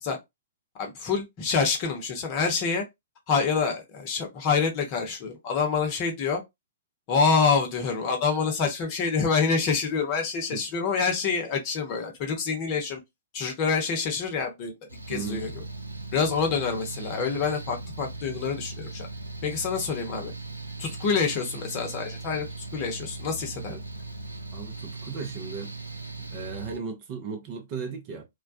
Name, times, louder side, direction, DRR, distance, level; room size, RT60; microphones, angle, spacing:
voice 1, 0.8-2.8 3.3-6.4 7.1-13.0 13.3-14.7 15.1-15.5 16.1-19.1 19.4-20.3 20.8-22.5 22.7-23.8, left 5 dB, 35° left, 0.8 m, -26 dB
Mechanical fan, 14.9-26.8, right 3 dB, 85° right, 0.4 m, -39 dB
voice 2, 15.1-15.5 23.5-23.8 24.5-25.7 26.2-28.3, right 5 dB, 35° right, 0.6 m, -36 dB
2.2 x 2.2 x 2.5 m
figure-of-eight pair, 115°, 0 cm